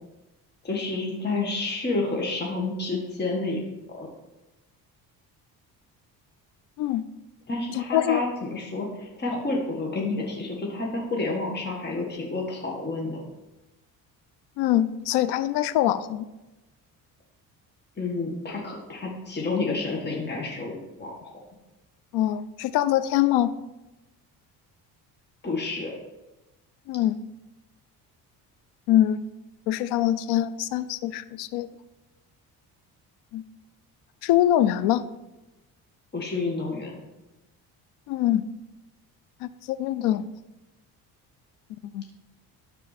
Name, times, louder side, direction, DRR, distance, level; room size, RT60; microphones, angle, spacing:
voice 1, 0.6-3.6 3.9-4.1 7.5-13.2 18.0-21.1 25.4-25.9 36.1-37.0, left 3 dB, 25° left, -1 dB, 1.7 m, -29 dB
voice 2, 7.8-8.2 14.6-16.3 22.1-23.6 26.9-27.2 28.9-29.2 29.7-31.7 33.3-33.4 34.2-35.1 38.1-38.4 39.4-40.3 41.9-42.0, left 12 dB, 85° left, 15 dB, 0.5 m, -23 dB
12.5 x 4.4 x 4.2 m, 1.0 s
cardioid pair, 105°, 39 cm